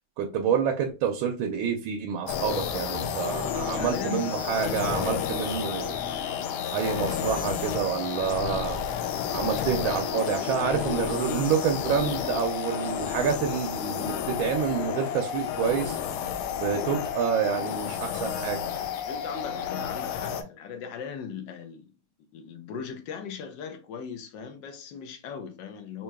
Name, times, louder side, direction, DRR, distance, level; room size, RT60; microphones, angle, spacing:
voice 1, 0.2-6.1 6.7-8.8 9.3-16.0 16.6-18.6, right 7 dB, 85° right, 1.4 m, -28 dB
sound 1, 2.3-20.4, left 8 dB, 90° left, 1.4 m, -31 dB
voice 2, 3.8-4.7 19.1-21.9 22.3-26.0, left 7 dB, 70° left, 1.3 m, -38 dB
4.5 x 2.8 x 2.2 m
omnidirectional pair, 2.2 m